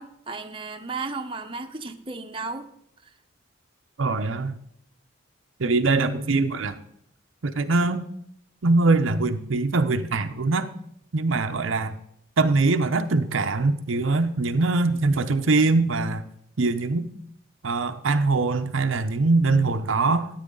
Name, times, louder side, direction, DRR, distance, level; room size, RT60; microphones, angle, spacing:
voice 1, 0.0-2.7 3.0-3.1, right 3 dB, 25° right, 4 dB, 0.8 m, -34 dB
voice 2, 4.0-4.6 5.6-6.8 7.4-8.0 8.6-10.7 11.1-11.9 12.4-16.2 16.6-17.1 17.6-20.3, right 3 dB, 75° right, 8 dB, 0.7 m, -22 dB
13.5 x 9.1 x 3.8 m, 0.72 s
head